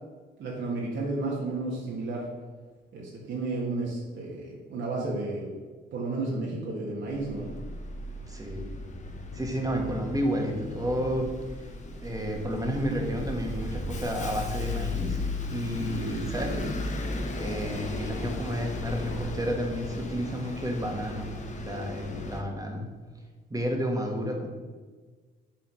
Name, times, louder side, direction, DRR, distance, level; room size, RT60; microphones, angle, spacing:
voice 1, 0.4-2.2 2.9-5.6 5.9-7.6, right 2 dB, 70° right, -4 dB, 1.8 m, -32 dB
Bus, 7.1-22.4, left 2 dB, 35° left, 1.1 m, -36 dB
voice 2, 8.3-8.7 9.3-11.4 12.0-15.2 15.5-16.7 17.4-21.3 21.6-22.9 23.5-24.5, equal, 15° right, 2 dB, 1.7 m, -31 dB
7.3 x 3.9 x 6.3 m, 1.4 s
cardioid pair, 90°, 20 cm